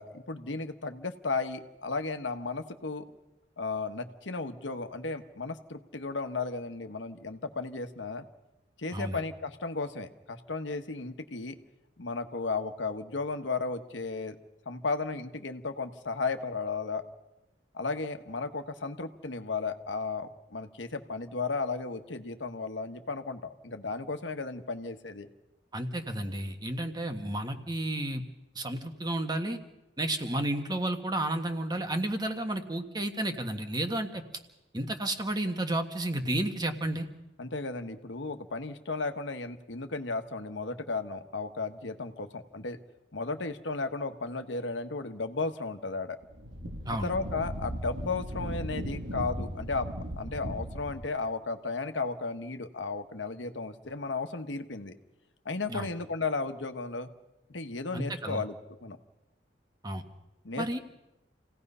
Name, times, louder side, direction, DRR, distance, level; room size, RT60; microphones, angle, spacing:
voice 1, 0.0-3.0 3.6-8.3 8.8-11.5 12.0-14.3 14.6-17.0 17.7-25.3 37.4-42.8 43.1-46.2 47.0-49.9 50.2-55.0 55.4-57.1 57.5-58.5 58.8-59.0 60.4-60.7, left 3 dB, 85° left, 7 dB, 1.3 m, -34 dB
voice 2, 25.7-28.2 28.5-29.6 30.0-34.2 34.7-37.1 46.8-47.1 55.7-55.9 57.9-58.4 59.8-60.0 60.6-60.8, right 1 dB, 25° right, 6 dB, 1.5 m, -32 dB
Wind, 46.2-51.1, equal, 85° right, 2.9 m, -37 dB
28.0 x 17.0 x 5.6 m, 0.96 s
head